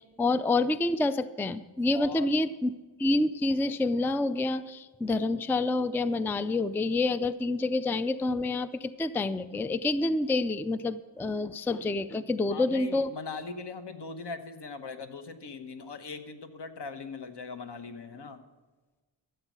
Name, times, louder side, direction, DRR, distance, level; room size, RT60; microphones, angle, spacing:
voice 1, 0.0-2.7 3.0-13.1, left 2 dB, 5° left, 13 dB, 0.3 m, -28 dB
voice 2, 1.9-2.3 12.5-18.4, left 4 dB, 60° left, 8 dB, 1.1 m, -40 dB
14.0 x 8.1 x 6.1 m, 1.2 s
wide cardioid pair, 75°, 46 cm